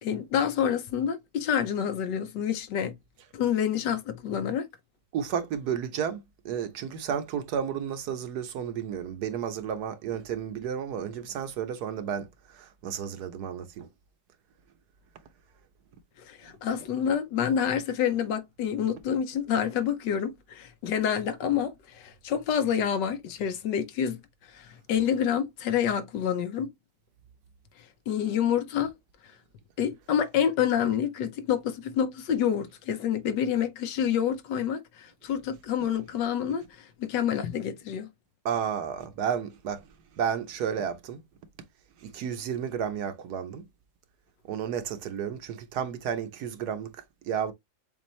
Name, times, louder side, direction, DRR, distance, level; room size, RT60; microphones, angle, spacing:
voice 1, 0.0-3.0 3.3-4.7 16.3-24.2 24.5-26.7 28.1-28.9 29.8-38.1, left 8 dB, 75° left, 1.4 m, -28 dB
voice 2, 5.1-13.9 38.4-39.8 40.1-41.2 42.0-43.6 44.5-47.5, right 8 dB, 70° right, 1.2 m, -32 dB
7.0 x 2.4 x 3.0 m
omnidirectional pair, 1.9 m